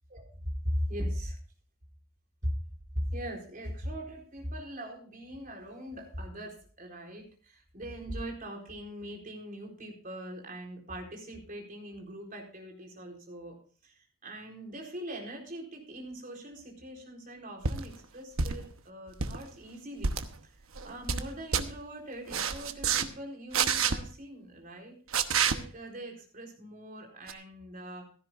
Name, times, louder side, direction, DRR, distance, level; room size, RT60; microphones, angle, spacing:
voice 1, 0.6-1.4 2.4-2.5 3.1-20.1 20.4-20.5 20.8-25.0 25.4-28.0, equal, 45° right, 1 dB, 4.1 m, -40 dB
sound 1, 17.6-17.8 18.4-18.7 19.1-19.4 20.0-20.3 20.7-21.2 21.5-21.7 22.3-23.1 23.5-24.0 25.1-25.6 27.3-27.4, right 6 dB, 75° right, 1.0 m, -28 dB
16.0 x 13.5 x 2.5 m, 0.41 s
head